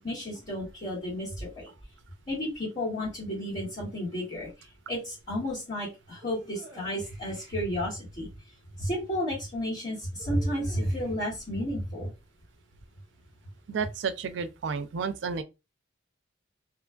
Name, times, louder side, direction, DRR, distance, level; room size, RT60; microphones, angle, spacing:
voice 1, 0.0-1.7 2.3-4.5 4.9-8.3 8.8-12.1, equal, 45° left, 1.5 m, -32 dB
sound 1, 6.2-7.6 10.2-11.3, right 1 dB, 20° right, 0.9 m, -49 dB
voice 2, 13.7-15.4, right 5 dB, 70° right, 0.4 m, -31 dB
3.0 x 2.3 x 2.2 m
head